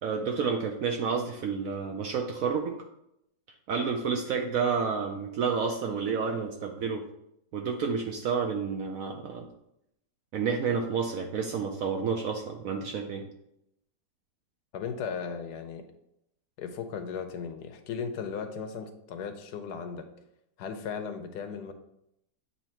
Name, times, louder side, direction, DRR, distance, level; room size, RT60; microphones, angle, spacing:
voice 1, 0.0-2.8 3.7-7.0 7.5-9.5 10.3-13.2, right 5 dB, 70° right, 2 dB, 0.8 m, -30 dB
voice 2, 14.7-15.9 16.6-20.1 20.6-21.7, left 6 dB, 75° left, 7 dB, 1.1 m, -36 dB
8.0 x 2.9 x 4.4 m, 0.80 s
omnidirectional pair, 1.9 m